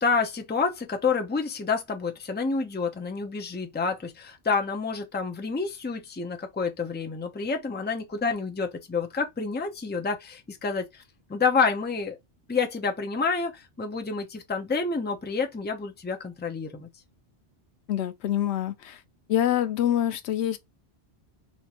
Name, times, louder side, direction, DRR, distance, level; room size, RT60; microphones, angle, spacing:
voice 1, 0.0-11.0 11.3-12.2 12.5-16.9, left 4 dB, 15° left, 0.5 m, -28 dB
voice 2, 17.9-19.0 19.3-20.6, left 11 dB, 80° left, 0.8 m, -25 dB
4.3 x 2.6 x 2.8 m
omnidirectional pair, 1.1 m